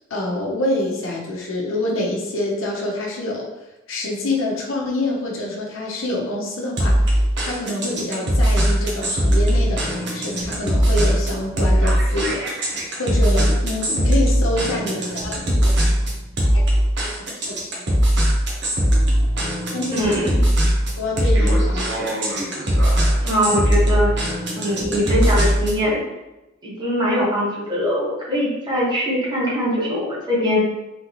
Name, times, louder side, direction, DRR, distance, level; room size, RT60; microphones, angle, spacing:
voice 1, 0.1-3.5 3.9-15.8 17.5-17.6 17.9-18.0 19.7-20.4 21.0-22.2, left 1 dB, 80° left, -2 dB, 0.9 m, -26 dB
sound 1, 6.8-25.8, equal, 60° right, 1.1 m, -19 dB
voice 2, 19.9-20.4 23.2-24.1 24.5-26.0 26.6-30.6, equal, 20° right, -6 dB, 1.3 m, -22 dB
3.9 x 3.7 x 3.0 m, 0.99 s
head